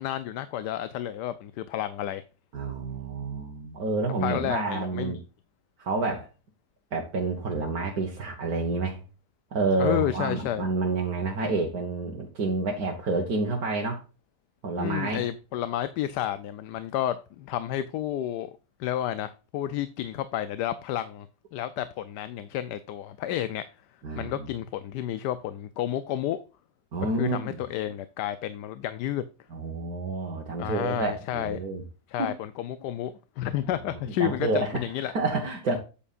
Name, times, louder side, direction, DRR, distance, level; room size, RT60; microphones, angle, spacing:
voice 1, 0.0-2.2 4.2-5.2 9.8-10.7 14.8-18.5 18.8-21.3 21.5-23.7 24.2-26.4 27.0-29.2 30.6-31.6 32.1-35.1 35.7-35.8, left 12 dB, 90° left, 1.2 m, -31 dB
voice 2, 2.5-5.2 5.8-6.3 6.9-9.0 9.5-14.0 14.6-15.2 24.0-24.5 26.9-27.6 29.5-31.8 32.2-32.3 33.6-33.7 34.1-35.8, right 3 dB, 65° right, 1.7 m, -29 dB
8.8 x 8.5 x 2.5 m
omnidirectional pair, 1.8 m